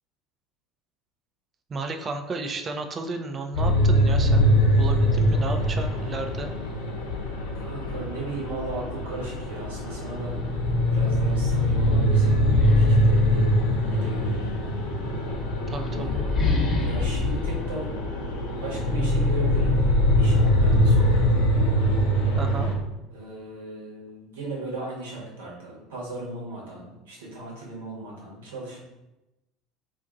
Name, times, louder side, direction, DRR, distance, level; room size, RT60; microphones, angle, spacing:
voice 1, 1.7-4.5 4.8-6.5 15.7-16.2 22.4-22.7, right 3 dB, 30° right, 5 dB, 0.4 m, -33 dB
sound 1, 3.5-22.7, equal, 70° left, 0.6 m, -23 dB
voice 2, 7.5-10.3 10.9-13.5 13.9-14.8 15.9-18.0 18.3-19.8 20.2-21.3 23.1-28.8, right 2 dB, 75° right, -4 dB, 1.0 m, -37 dB
sound 2, 10.5-14.2 15.1-18.7, left 3 dB, 30° left, 0.9 m, -29 dB
2.5 x 2.5 x 3.7 m, 0.97 s
figure-of-eight pair, 70°, 0 cm